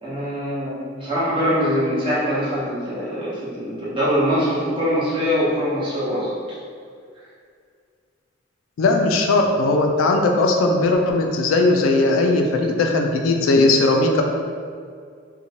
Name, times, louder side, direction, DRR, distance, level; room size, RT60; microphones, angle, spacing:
voice 1, 0.0-6.3, equal, 25° right, -9 dB, 0.8 m, -23 dB
voice 2, 8.8-14.2, left 2 dB, 85° left, 3 dB, 0.3 m, -18 dB
2.9 x 2.1 x 2.7 m, 2.2 s
head